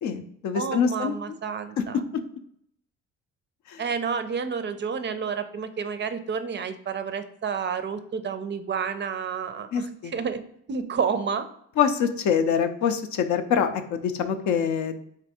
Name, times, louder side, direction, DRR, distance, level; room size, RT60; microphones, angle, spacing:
voice 1, 0.0-1.2 3.7-3.8 9.7-10.2 11.8-15.0, left 7 dB, 70° left, 8 dB, 0.5 m, -25 dB
voice 2, 0.5-2.0 3.8-10.4 10.7-11.5, right 6 dB, 40° right, 10 dB, 0.4 m, -30 dB
3.4 x 2.5 x 4.1 m, 0.69 s
cardioid pair, 90°, 30 cm